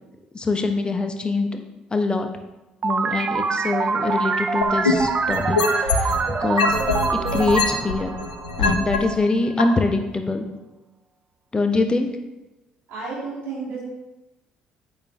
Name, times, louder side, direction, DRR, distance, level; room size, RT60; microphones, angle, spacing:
voice 1, 0.3-1.6 1.9-2.3 2.8-6.1 6.4-6.6 7.3-8.1 8.6-10.5 11.5-12.1, left 3 dB, 25° left, 6 dB, 1.0 m, -23 dB
sound 1, 2.8-9.1, right 4 dB, 35° right, 0.5 m, -25 dB
sound 2, 4.6-6.2 6.6-9.0 9.6-9.7, left 4 dB, 85° left, 0.7 m, -22 dB
voice 2, 12.9-13.8, right 4 dB, 60° right, -7 dB, 2.6 m, -32 dB
8.6 x 6.2 x 3.4 m, 0.99 s
figure-of-eight pair, 50°, 4 cm